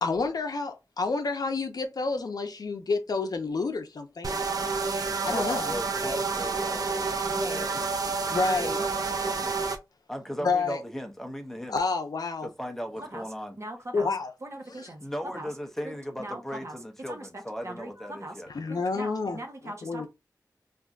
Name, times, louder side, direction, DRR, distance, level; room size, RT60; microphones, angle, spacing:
voice 1, 0.0-4.5 5.2-5.7 8.3-8.9 10.4-10.8 11.7-12.5 13.9-14.3 14.8-14.9 18.5-19.4 19.6-20.1, left 4 dB, 70° left, 0.5 m, -29 dB
sound 1, 4.2-9.8, right 4 dB, 65° right, 0.5 m, -29 dB
voice 2, 5.3-7.8 8.5-9.6 10.1-11.8 12.4-13.6 15.0-18.5, equal, 5° left, 0.7 m, -37 dB
voice 3, 7.3-7.7 8.1-8.3 13.0-13.2 13.6-14.1 14.4-15.0 15.3-15.5 15.8-16.8 17.1-18.4 18.7-20.1, right 1 dB, 45° right, 0.9 m, -40 dB
3.4 x 2.6 x 2.4 m
wide cardioid pair, 90°, 7 cm